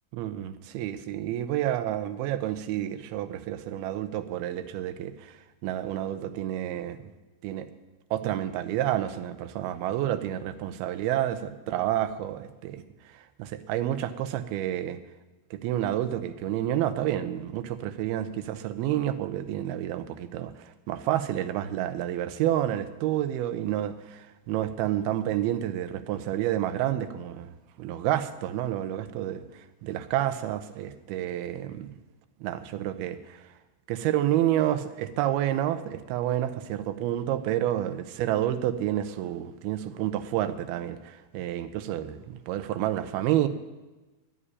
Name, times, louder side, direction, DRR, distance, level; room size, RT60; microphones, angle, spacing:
voice 1, 0.2-5.4 5.6-7.1 7.4-7.7 8.1-12.8 13.1-15.0 15.5-31.9 32.4-33.5 33.9-43.5, right 12 dB, 85° right, 11 dB, 2.7 m, -29 dB
11.0 x 7.8 x 9.8 m, 1.1 s
omnidirectional pair, 4.3 m